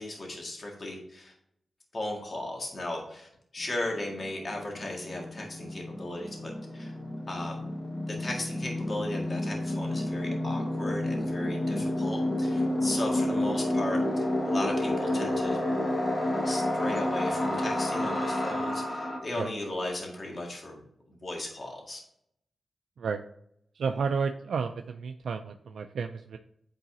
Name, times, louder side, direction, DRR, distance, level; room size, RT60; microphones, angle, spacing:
voice 1, 0.0-1.3 1.9-7.0 7.3-7.6 8.1-15.6 16.4-20.8 21.1-22.0, left 1 dB, 45° left, 0 dB, 1.8 m, -36 dB
sound 1, 3.7-3.8 3.9-19.2, left 1 dB, 25° left, 1.4 m, -30 dB
voice 2, 23.7-26.4, right 5 dB, 85° right, 6 dB, 0.3 m, -31 dB
8.8 x 4.0 x 2.7 m, 0.73 s
cardioid pair, 75°, 0 cm